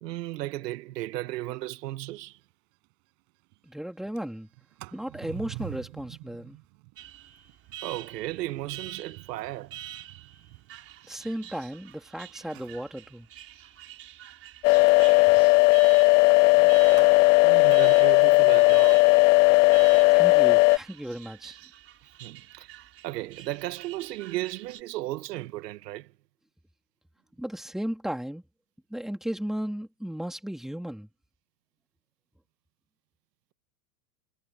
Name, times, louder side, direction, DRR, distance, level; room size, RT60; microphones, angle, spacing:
voice 1, 0.0-2.4 7.8-9.8 17.4-19.0 22.2-26.1, right 16 dB, 80° right, 1.9 m, -35 dB
Sliding door, 2.4-2.5 2.8-2.9 3.3-3.6 4.0-12.0 12.4-12.9 14.9-17.3, right 36 dB, 50° right, 6.2 m, -48 dB
voice 2, 3.7-4.5 4.9-6.6 11.0-13.3 20.1-21.6 27.4-28.4 28.9-31.1, equal, ahead, 2.9 m, -35 dB
Alarm, 7.0-24.8, right 12 dB, 30° right, 4.2 m, -46 dB
sound 1, 14.6-20.8, left 23 dB, 50° left, 0.6 m, -17 dB
supercardioid pair, 150°, 48 cm